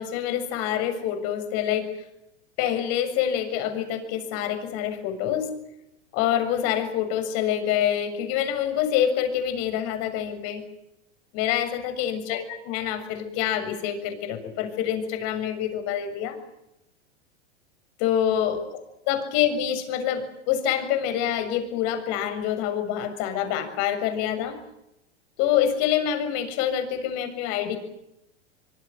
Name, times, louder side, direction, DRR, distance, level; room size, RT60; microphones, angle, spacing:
voice 1, 0.0-1.9 2.6-5.5 6.1-10.6 11.3-16.4 18.0-18.8 19.1-24.6 25.4-27.8, left 10 dB, 50° left, 9 dB, 7.0 m, -26 dB
25.5 x 24.5 x 7.8 m, 0.85 s
hypercardioid pair, 105°, 33 cm